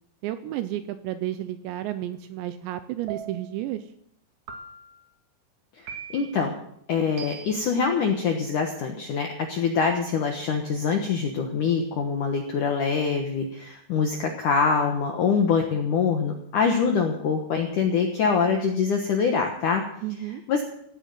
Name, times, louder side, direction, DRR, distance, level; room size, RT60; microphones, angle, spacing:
voice 1, 0.2-3.8 20.0-20.4, right 13 dB, 80° right, 11 dB, 2.7 m, -32 dB
sound 1, 3.1-3.7 4.5-5.1 5.9-6.4 7.2-7.7, right 7 dB, 60° right, 2.1 m, -40 dB
voice 2, 6.1-6.5 6.9-19.9 20.5-20.6, left 5 dB, 75° left, 3 dB, 1.9 m, -24 dB
16.5 x 9.2 x 7.6 m, 0.72 s
omnidirectional pair, 5.6 m